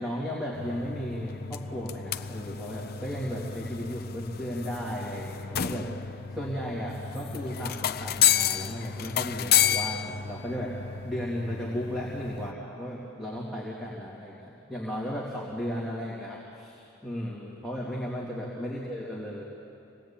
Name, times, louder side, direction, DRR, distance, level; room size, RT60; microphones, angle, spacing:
voice 1, 0.0-19.4, equal, ahead, -7 dB, 2.8 m, -35 dB
sound 1, 0.5-12.5, left 9 dB, 50° left, 0.6 m, -31 dB
25.5 x 19.5 x 8.8 m, 2.7 s
head